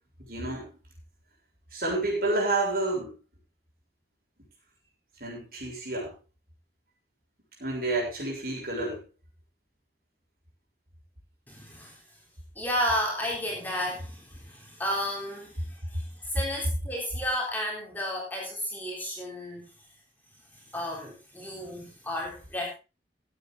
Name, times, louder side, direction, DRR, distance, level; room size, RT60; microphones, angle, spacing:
voice 1, 0.2-0.8 1.7-3.2 5.2-6.1 7.6-9.0, right 2 dB, 50° right, -1 dB, 6.7 m, -29 dB
voice 2, 11.5-12.0 12.5-19.7 20.7-22.7, equal, 10° left, -2 dB, 3.6 m, -32 dB
15.5 x 9.6 x 3.8 m, 0.30 s
head